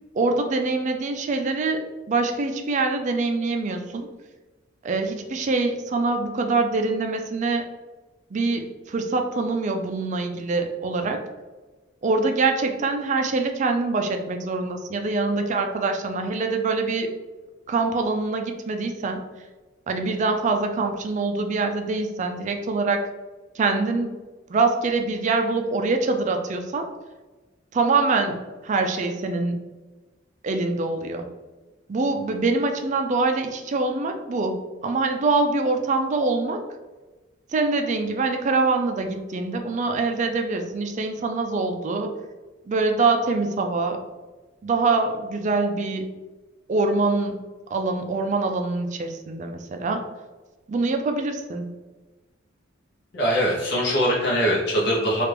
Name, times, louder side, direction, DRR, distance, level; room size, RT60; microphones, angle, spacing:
voice 1, 0.1-4.1 4.8-7.6 8.3-11.2 12.0-17.1 17.7-19.2 19.9-23.0 23.5-24.1 24.5-26.9 27.7-29.6 30.4-31.3 31.9-36.6 37.5-42.1 42.7-44.0 44.6-46.1 46.7-47.4 47.7-50.1 50.7-51.7, right 3 dB, 40° right, 5 dB, 0.3 m, -24 dB
voice 2, 53.1-55.2, equal, 60° left, -4 dB, 0.8 m, -22 dB
3.3 x 2.4 x 3.2 m, 1.2 s
head